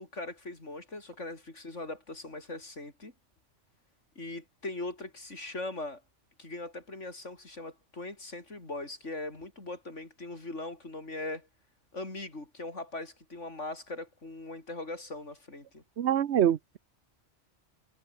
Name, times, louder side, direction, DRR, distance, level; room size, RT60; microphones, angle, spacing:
voice 1, 0.0-3.1 4.1-6.0 6.4-11.5 11.9-15.8, left 2 dB, 85° left, 5.1 m, -40 dB
voice 2, 16.0-16.8, right 10 dB, 70° right, 1.1 m, -25 dB
omnidirectional pair, 1.2 m